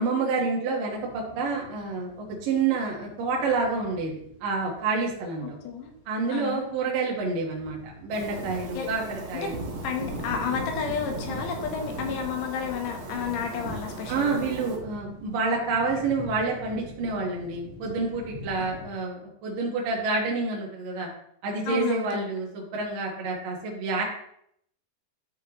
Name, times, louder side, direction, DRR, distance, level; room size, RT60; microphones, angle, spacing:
voice 1, 0.0-5.6 6.1-9.6 14.1-21.1 21.4-24.0, right 4 dB, 60° right, -3 dB, 2.6 m, -28 dB
sound 1, 0.9-18.9, left 1 dB, 50° left, 2.8 m, -45 dB
voice 2, 5.4-5.9 6.3-6.6 8.7-8.9 9.4-9.5 9.8-14.4 18.6-18.7 21.7-22.1, left 7 dB, 75° left, 3 dB, 3.0 m, -31 dB
sound 2, 8.1-14.8, right 2 dB, 80° right, 1.2 m, -37 dB
12.5 x 5.7 x 3.0 m, 0.71 s
omnidirectional pair, 5.2 m